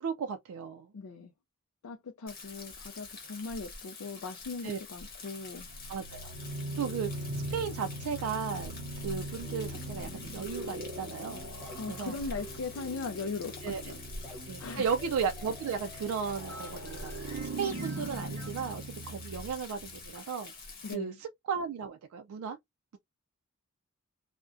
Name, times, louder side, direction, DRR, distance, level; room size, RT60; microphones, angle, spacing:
voice 1, 0.0-0.9 4.6-4.8 5.9-6.3 6.8-11.4 11.9-12.2 13.6-13.9 14.5-20.5 20.9-22.6, right 6 dB, 80° right, 0.3 m, -35 dB
voice 2, 0.9-1.3 1.8-5.7 11.8-13.5 13.8-14.0 14.6-14.9 16.8-16.9 20.8-21.2, left 4 dB, 80° left, 0.4 m, -39 dB
Rain, 2.3-20.9, left 3 dB, 45° left, 0.9 m, -46 dB
sound 1, 5.5-20.1, right 1 dB, 50° right, 0.7 m, -41 dB
sound 2, 9.4-18.5, equal, 10° left, 0.8 m, -49 dB
2.4 x 2.1 x 2.5 m
head